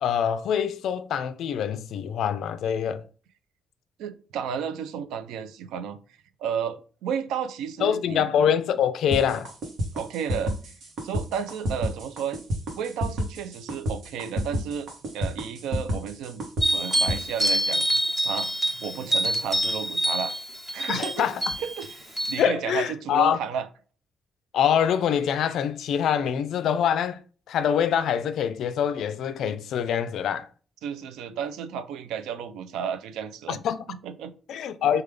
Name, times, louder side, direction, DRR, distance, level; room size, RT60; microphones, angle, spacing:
voice 1, 0.0-3.0 7.8-9.5 20.9-21.6 22.4-23.4 24.5-27.2 27.5-30.5 33.5-33.9 34.5-35.0, left 8 dB, 75° left, 0.3 m, -25 dB
voice 2, 4.0-6.0 6.4-8.2 9.9-10.5 11.0-12.4 12.7-14.9 15.1-16.5 16.7-17.9 18.2-18.5 18.8-20.4 20.7-21.3 21.6-23.7 30.8-33.6 33.9-34.3, right 7 dB, 90° right, 0.3 m, -32 dB
sound 1, 9.1-17.2, equal, 70° right, 0.9 m, -29 dB
sound 2, 16.6-22.4, equal, 15° right, 1.0 m, -26 dB
3.3 x 2.2 x 3.2 m
cardioid pair, 90°, 0 cm